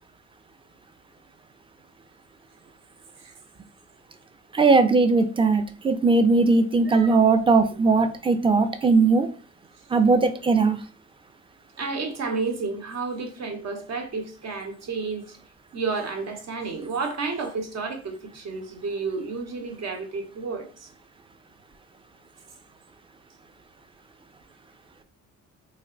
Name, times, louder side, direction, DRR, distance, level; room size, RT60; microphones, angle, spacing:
voice 1, 4.5-9.3 9.9-10.8, right 3 dB, 20° right, 0.4 m, -19 dB
voice 2, 6.9-7.2 11.8-15.3 15.7-20.9, right 4 dB, 60° right, 1.0 m, -31 dB
3.2 x 2.1 x 3.7 m
cardioid pair, 90°, 30 cm